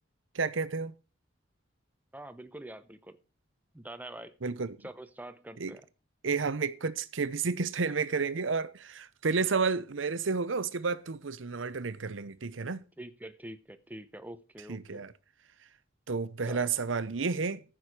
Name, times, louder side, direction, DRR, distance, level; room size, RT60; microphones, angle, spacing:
voice 1, 0.3-0.9 4.4-4.8 5.6-5.8 6.2-12.8 14.7-15.1 16.1-17.6, right 4 dB, 75° right, 0.8 m, -31 dB
voice 2, 2.1-3.2 3.7-4.3 4.8-5.8 13.0-15.0 16.4-16.7, right 1 dB, 10° right, 0.8 m, -45 dB
14.5 x 6.3 x 4.8 m
head